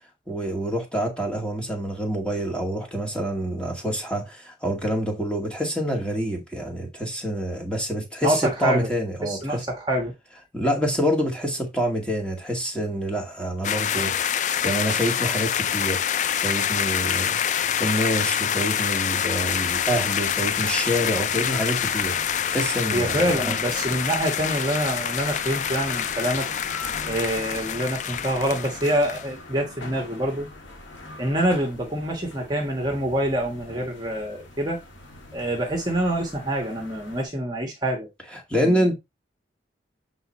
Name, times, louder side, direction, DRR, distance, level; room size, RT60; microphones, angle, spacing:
voice 1, 0.3-9.6 10.5-16.0 16.4-22.1 22.5-23.6 38.5-38.9, equal, 5° left, 2.0 m, -27 dB
voice 2, 8.2-8.9 9.2-10.1 22.9-26.5 27.1-30.5 31.2-34.8 35.3-38.1 38.6-38.9, right 1 dB, 20° right, 1.4 m, -26 dB
sound 1, 13.6-29.3, left 9 dB, 40° left, 0.3 m, -26 dB
sound 2, 19.5-37.2, left 2 dB, 85° left, 2.3 m, -41 dB
7.9 x 3.9 x 4.3 m
head